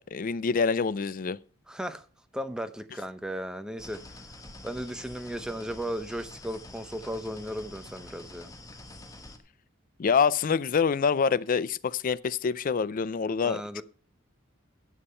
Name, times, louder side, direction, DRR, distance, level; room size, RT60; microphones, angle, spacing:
voice 1, 0.1-1.4 10.0-13.6, left 6 dB, 40° left, 0.4 m, -26 dB
voice 2, 1.7-2.0 2.3-4.0 4.6-8.5 13.4-13.8, equal, 5° right, 0.7 m, -35 dB
sound 1, 3.8-9.4, left 2 dB, 15° left, 1.1 m, -47 dB
9.9 x 7.2 x 5.5 m
head